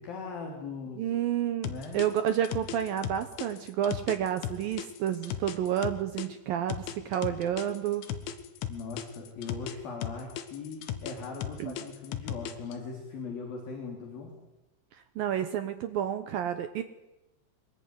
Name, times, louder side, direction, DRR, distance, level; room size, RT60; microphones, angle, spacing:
voice 1, 0.0-1.0 1.7-2.0 8.7-14.4, left 4 dB, 50° left, 1 dB, 4.7 m, -40 dB
voice 2, 1.0-8.0 11.6-11.7 14.9-16.8, right 10 dB, 80° right, 10 dB, 2.1 m, -30 dB
sound 1, 1.6-6.3 6.7-9.8 10.0-12.7, left 10 dB, 85° left, 4.0 m, -36 dB
24.5 x 20.0 x 9.6 m, 1.0 s
omnidirectional pair, 5.4 m